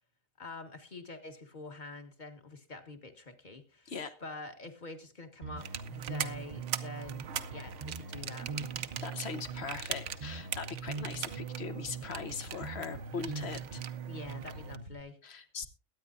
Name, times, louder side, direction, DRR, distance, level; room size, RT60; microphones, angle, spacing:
voice 1, 0.4-3.9 4.2-8.5 14.1-15.2, left 3 dB, 35° left, 6 dB, 1.6 m, -46 dB
Bass guitar, 5.4-15.0, right 5 dB, 40° right, 0.9 m, -42 dB
sound 1, 5.6-14.8, right 9 dB, 65° right, 1.0 m, -42 dB
voice 2, 9.0-13.8 15.2-15.7, left 5 dB, 50° left, 9 dB, 1.2 m, -40 dB
22.0 x 9.5 x 2.6 m, 0.37 s
omnidirectional pair, 1.4 m